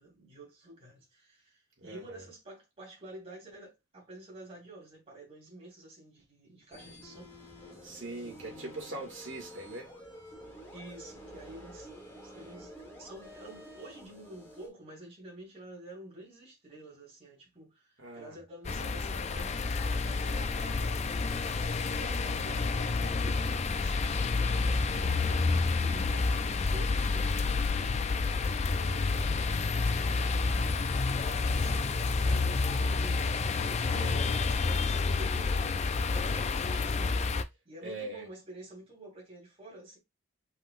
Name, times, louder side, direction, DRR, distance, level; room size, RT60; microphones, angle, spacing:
voice 1, 0.0-7.3 8.2-9.0 10.7-11.9 12.2-21.3 21.6-25.5 25.8-28.1 28.6-37.2 37.6-40.0, right 1 dB, 30° right, 2.9 m, -50 dB
voice 2, 1.8-2.2 7.8-9.9 18.0-18.4 33.9-34.3 37.8-38.3, right 2 dB, 60° right, 2.3 m, -41 dB
sound 1, 6.7-14.7, equal, 10° left, 1.4 m, -50 dB
sound 2, 18.6-37.4, left 4 dB, 30° left, 0.3 m, -29 dB
5.5 x 3.7 x 2.5 m
head